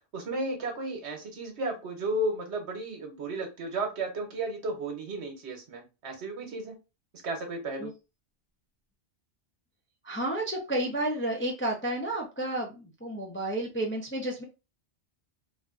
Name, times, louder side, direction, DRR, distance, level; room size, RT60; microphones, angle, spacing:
voice 1, 0.1-6.7 7.2-7.9, right 2 dB, 70° right, 3 dB, 1.2 m, -33 dB
voice 2, 10.0-14.4, right 1 dB, 15° left, 0 dB, 0.4 m, -31 dB
3.4 x 2.6 x 2.4 m, 0.28 s
omnidirectional pair, 1.2 m